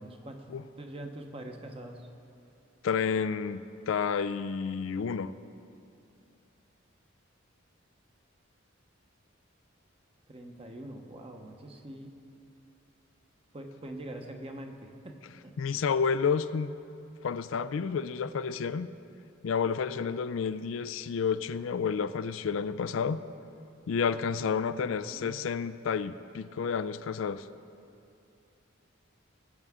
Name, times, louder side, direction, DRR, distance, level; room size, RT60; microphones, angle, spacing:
voice 1, 0.0-0.5 0.8-2.1 10.3-12.2 13.5-15.5 24.8-25.5, right 1 dB, 30° right, 3 dB, 0.9 m, -44 dB
voice 2, 2.8-3.6 3.9-5.3 15.6-16.7 17.2-18.9 19.4-23.3 23.9-27.4, left 6 dB, 70° left, 13 dB, 0.4 m, -30 dB
21.5 x 8.0 x 3.7 m, 2.6 s
head